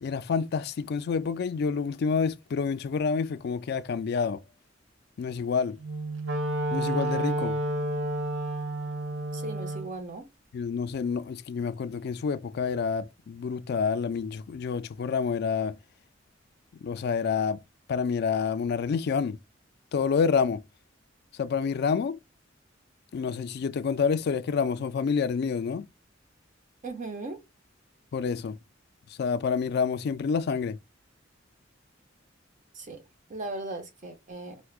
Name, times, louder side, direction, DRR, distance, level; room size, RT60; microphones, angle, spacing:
voice 1, 0.0-4.4 5.2-5.8 6.7-7.6 10.5-15.8 16.8-17.6 17.9-19.4 19.9-20.6 21.4-22.2 23.1-25.8 28.1-28.6 29.2-30.8, left 5 dB, 55° left, 0.3 m, -28 dB
Wind instrument woodwind instrument, 5.8-9.9, right 1 dB, 75° right, 0.6 m, -30 dB
voice 2, 9.3-10.3 26.8-27.4 32.7-33.0 33.3-34.6, right 2 dB, 40° right, 0.7 m, -37 dB
4.5 x 2.1 x 2.4 m
head